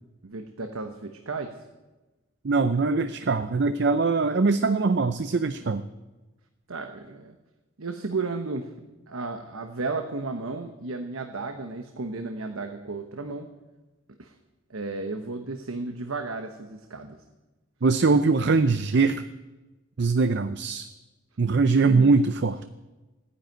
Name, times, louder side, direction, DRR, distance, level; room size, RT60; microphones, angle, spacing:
voice 1, 0.2-1.6 6.7-7.3 7.8-8.7 9.1-13.5 14.2-14.3 14.7-17.2 21.9-22.1, right 3 dB, 85° right, 6 dB, 1.1 m, -33 dB
voice 2, 2.4-5.8 17.8-19.2 20.0-20.9 21.4-22.7, right 4 dB, 55° right, 11 dB, 0.5 m, -22 dB
15.5 x 10.0 x 9.1 m, 1.1 s
head